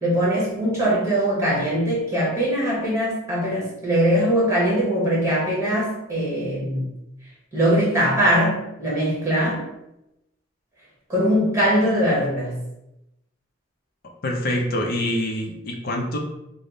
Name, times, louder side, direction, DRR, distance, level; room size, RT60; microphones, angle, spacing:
voice 1, 0.0-6.8 7.5-9.7 11.1-12.6, equal, 15° right, -6 dB, 1.1 m, -21 dB
voice 2, 14.2-16.2, left 1 dB, 45° left, 0 dB, 0.5 m, -25 dB
3.5 x 2.0 x 3.8 m, 0.88 s
head